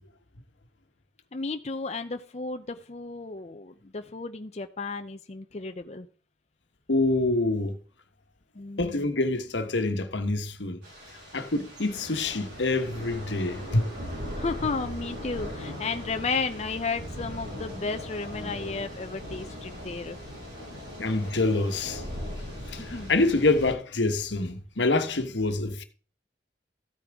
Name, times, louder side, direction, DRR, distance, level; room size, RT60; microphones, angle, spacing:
voice 1, 1.3-6.1 8.6-9.1 14.4-20.2 22.8-23.1, left 4 dB, 40° left, 0.6 m, -33 dB
voice 2, 6.9-7.7 8.8-10.8 11.3-13.9 21.0-22.0 22.7-25.8, left 2 dB, 90° left, 1.3 m, -26 dB
Thunder / Rain, 10.8-23.7, equal, 70° right, 7.0 m, -39 dB
14.5 x 8.8 x 3.5 m
head